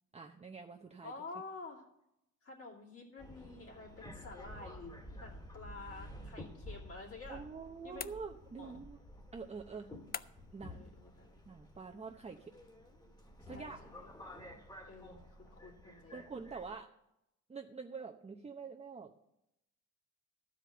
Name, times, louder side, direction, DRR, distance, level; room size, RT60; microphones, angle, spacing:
voice 1, 0.1-1.1 7.3-9.0 9.3-9.9 10.5-10.8 11.5-12.5 13.5-13.8 16.1-16.9 17.5-19.1, right 5 dB, 20° right, 2 dB, 0.8 m, -46 dB
voice 2, 1.0-1.9 2.4-7.5 7.8-8.0 8.6-8.8 9.9-10.3 10.7-11.3 13.5-14.1 14.9-16.2, left 3 dB, 50° left, -2 dB, 2.7 m, -50 dB
Subway metro underground, 3.2-16.8, left 1 dB, 15° left, 1.8 m, -52 dB
sound 1, 8.0-8.7 10.1-10.6, left 7 dB, 30° left, 0.4 m, -45 dB
12.5 x 5.1 x 7.8 m, 0.84 s
cardioid pair, 90°, 30 cm